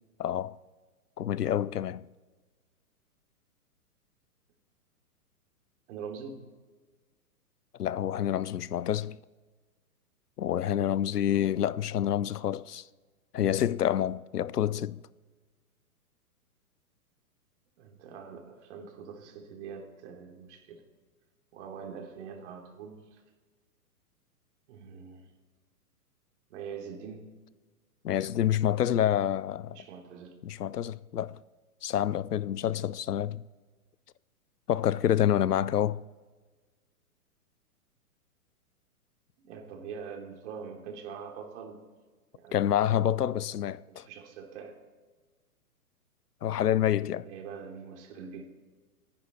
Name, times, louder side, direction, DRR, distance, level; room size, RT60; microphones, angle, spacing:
voice 1, 0.2-0.6 1.2-2.0 7.8-9.2 10.4-12.9 13.3-15.0 28.0-29.8 30.4-31.4 31.8-33.4 34.7-36.0 42.5-44.1 46.4-47.3, left 10 dB, 90° left, 0.6 m, -28 dB
voice 2, 5.9-6.4 17.8-20.8 21.5-23.2 24.7-25.3 26.5-27.3 29.7-30.4 39.4-41.8 42.3-43.0 43.9-44.8 47.1-48.5, right 6 dB, 50° right, 3.3 m, -44 dB
29.5 x 10.0 x 4.1 m
hypercardioid pair, 125°, 45 cm